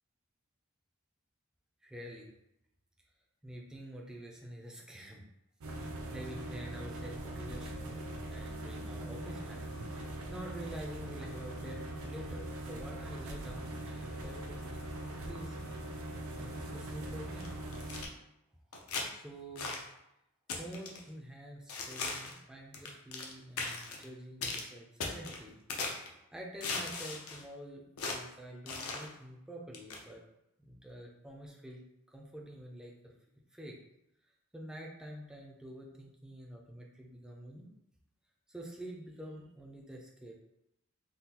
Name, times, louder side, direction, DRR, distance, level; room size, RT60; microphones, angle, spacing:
voice 1, 1.8-2.3 3.4-5.2 5.7-15.7 16.4-17.5 19.1-19.8 20.5-25.6 26.3-30.2 30.6-31.8 32.1-33.1 33.5-33.8 34.2-37.7 38.5-40.4, right 1 dB, 5° right, -2 dB, 0.4 m, -48 dB
sound 1, 5.6-18.1, right 1 dB, 70° right, 0.5 m, -41 dB
sound 2, 17.4-18.1 18.7-19.1 19.6-19.8 20.5-21.0 21.7-22.4 22.7-23.3 23.6-24.0 24.4-24.6 25.0-26.1 26.6-27.4 28.0-28.2 28.7-29.1 29.7-30.0, left 4 dB, 80° left, 0.6 m, -38 dB
3.7 x 2.3 x 2.8 m, 0.84 s
head